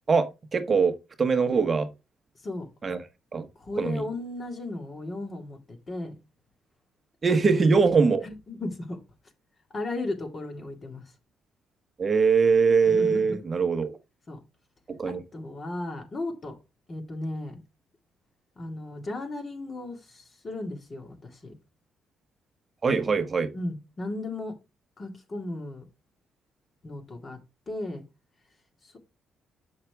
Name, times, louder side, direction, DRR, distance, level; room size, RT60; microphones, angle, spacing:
voice 1, 0.1-1.9 2.8-3.0 3.3-3.4 3.8-4.0 7.2-8.3 12.0-14.0 14.9-15.2 22.8-23.5, right 5 dB, 35° right, 1.1 m, -22 dB
voice 2, 3.6-6.1 7.3-7.7 8.2-9.0 9.7-11.1 12.8-13.4 14.3-14.4 15.1-16.6 16.9-17.6 18.6-21.5 23.5-24.6 25.0-25.9 26.8-27.4 27.7-28.0 28.8-29.0, left 2 dB, 35° left, 2.0 m, -35 dB
6.6 x 5.8 x 3.4 m
cardioid pair, 90°, 0 cm